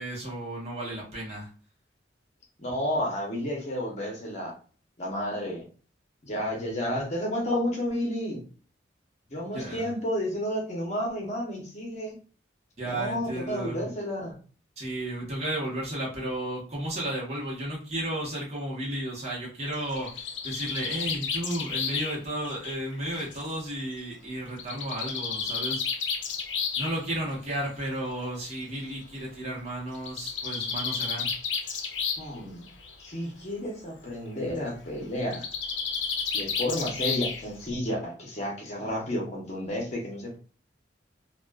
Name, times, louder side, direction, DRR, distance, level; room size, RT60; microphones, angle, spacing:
voice 1, 0.0-1.5 9.5-9.9 12.8-13.8 14.8-25.8 26.8-31.3, right 1 dB, 35° right, -4 dB, 1.0 m, -33 dB
voice 2, 2.6-4.5 5.0-5.7 6.2-8.4 9.3-12.1 12.8-14.4 32.2-32.7 33.0-35.4 36.3-40.4, left 1 dB, 40° left, -1 dB, 0.8 m, -31 dB
Bird, 19.7-23.5 24.6-26.9 28.0-28.1 28.5-28.6 28.8-28.9 29.9-32.4 32.7-33.1 35.2-37.6, left 6 dB, 75° left, 0.5 m, -32 dB
2.4 x 2.3 x 2.2 m, 0.39 s
head